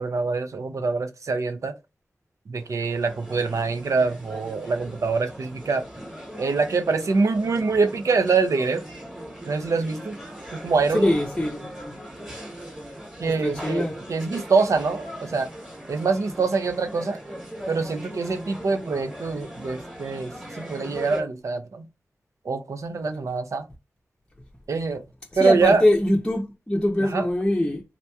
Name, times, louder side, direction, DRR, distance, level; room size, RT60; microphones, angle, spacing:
voice 1, 0.0-1.7 2.5-5.9 6.4-8.8 9.5-10.2 10.5-11.1 13.2-15.5 15.9-17.2 17.7-21.9 22.5-23.7 24.7-25.0 25.4-25.8 27.1-27.3, right 4 dB, 75° right, 0.4 m, -24 dB
sound 1, 2.6-21.2, equal, 15° right, 1.3 m, -39 dB
voice 2, 11.0-12.0 13.2-14.0 25.4-27.8, left 1 dB, 15° left, 0.6 m, -23 dB
3.5 x 2.8 x 2.3 m
wide cardioid pair, 95°, 5 cm